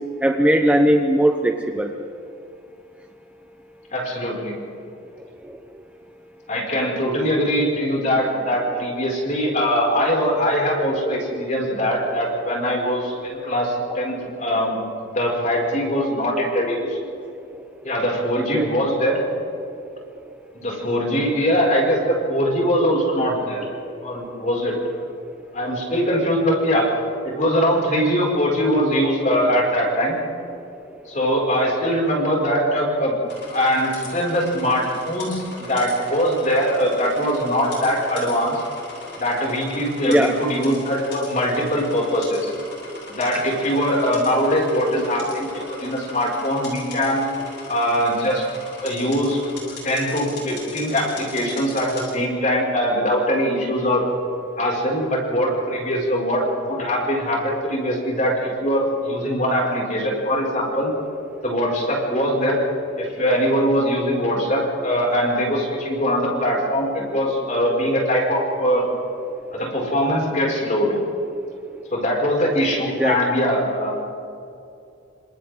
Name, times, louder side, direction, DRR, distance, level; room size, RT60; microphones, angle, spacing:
voice 1, 0.2-1.9 18.5-18.7 40.1-40.4 73.0-73.2, right 1 dB, 5° right, 3 dB, 0.9 m, -18 dB
voice 2, 3.9-4.5 6.5-17.0 17.8-19.2 20.5-23.7 24.0-25.0 25.5-26.9 27.2-30.2 31.1-33.1 33.5-38.6 39.2-42.5 43.2-47.2 47.7-48.4 48.8-49.4 49.8-54.1 54.6-60.9 61.4-62.6 63.0-68.8 69.5-71.0 71.9-73.9, equal, 40° left, -2 dB, 6.2 m, -22 dB
sound 1, 33.3-52.1, left 3 dB, 55° left, 7.6 m, -40 dB
29.0 x 27.0 x 3.9 m, 2.6 s
head